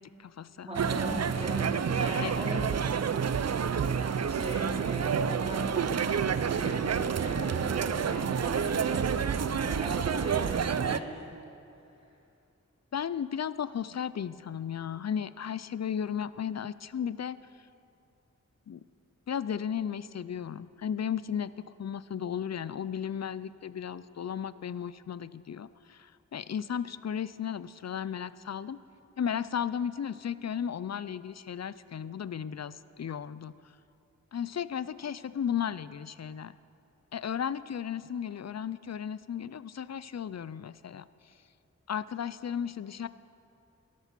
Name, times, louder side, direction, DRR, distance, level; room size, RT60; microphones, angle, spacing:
voice 1, 0.0-0.7 2.2-2.6 12.9-17.4 18.7-18.8 19.3-28.8 29.2-33.5 34.3-36.5 37.1-41.1 41.9-43.1, left 8 dB, 60° left, 16 dB, 0.4 m, -35 dB
voice 2, 0.6-2.7 3.9-11.3, right 1 dB, 20° right, -5 dB, 3.0 m, -39 dB
sound 1, 0.7-11.0, right 7 dB, 60° right, 0.4 m, -29 dB
12.5 x 12.5 x 6.0 m, 2.6 s
wide cardioid pair, 60°, 30 cm